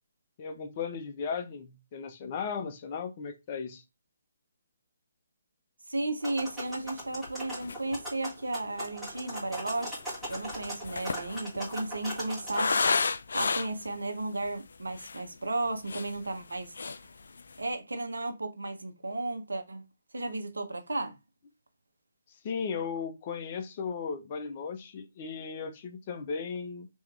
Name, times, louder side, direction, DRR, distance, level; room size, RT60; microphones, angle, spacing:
voice 1, 0.4-3.8 22.4-26.9, left 6 dB, 35° left, 0.8 m, -36 dB
voice 2, 5.9-10.0 10.3-13.0 13.3-16.7 17.6-19.8 20.1-21.1, right 2 dB, 85° right, 0.8 m, -34 dB
sound 1, 6.2-12.6, right 1 dB, 5° right, 1.9 m, -40 dB
sound 2, 6.8-6.9 7.3-7.4 7.6-8.1 8.9-13.9 14.5-14.6 14.9-15.2 15.7-16.5 16.8-17.1 17.4-17.7, left 4 dB, 70° left, 0.4 m, -32 dB
3.5 x 3.1 x 3.3 m
figure-of-eight pair, 145°, 0 cm